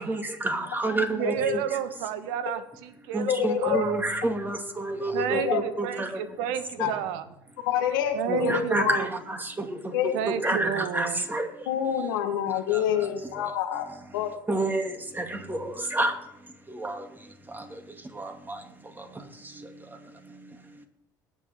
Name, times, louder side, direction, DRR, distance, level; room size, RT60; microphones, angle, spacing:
voice 1, 0.1-1.3 3.1-6.1 8.3-9.0 10.3-11.4 14.5-14.8 15.5-15.6 15.9-16.1 16.8-16.9, right 2 dB, 20° right, 4 dB, 2.6 m, -27 dB
voice 2, 1.1-3.9 5.1-7.2 8.1-9.1 10.1-11.2, right 9 dB, 75° right, 11 dB, 1.3 m, -31 dB
voice 3, 3.3-3.8 5.3-5.6 6.8-6.9 7.6-9.0 9.9-10.1 11.7-13.9 14.1-14.4, left 9 dB, 80° left, 4 dB, 1.5 m, -27 dB
22.0 x 8.9 x 3.7 m, 0.81 s
hypercardioid pair, 65°, 11 cm